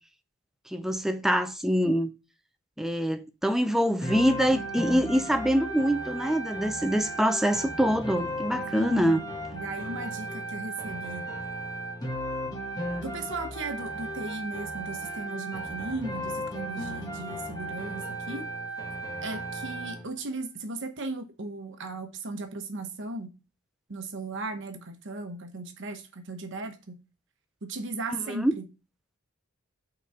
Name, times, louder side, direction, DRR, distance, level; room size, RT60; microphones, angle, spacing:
voice 1, 0.7-2.1 2.8-9.2 28.1-28.5, equal, ahead, 0.4 m, -25 dB
sound 1, 4.0-20.0, right 1 dB, 15° left, 1.6 m, -35 dB
voice 2, 8.7-9.2 9.5-11.3 13.0-18.5 19.2-23.3 23.9-27.0 27.6-28.6, right 2 dB, 55° right, 1.0 m, -36 dB
6.1 x 4.0 x 5.4 m
head